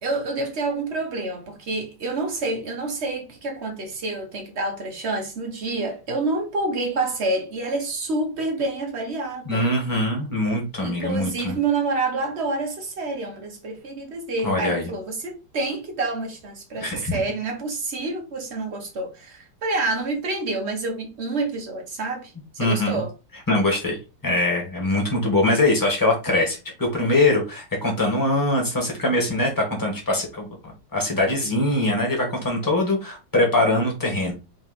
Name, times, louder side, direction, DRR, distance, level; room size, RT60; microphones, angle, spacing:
voice 1, 0.0-9.7 10.8-23.1, right 3 dB, 60° right, 0.6 m, -28 dB
voice 2, 9.5-11.6 14.4-14.9 16.8-17.1 22.6-23.0 23.5-30.5 30.9-34.3, left 2 dB, 10° left, 1.1 m, -22 dB
4.2 x 2.8 x 4.0 m
omnidirectional pair, 2.4 m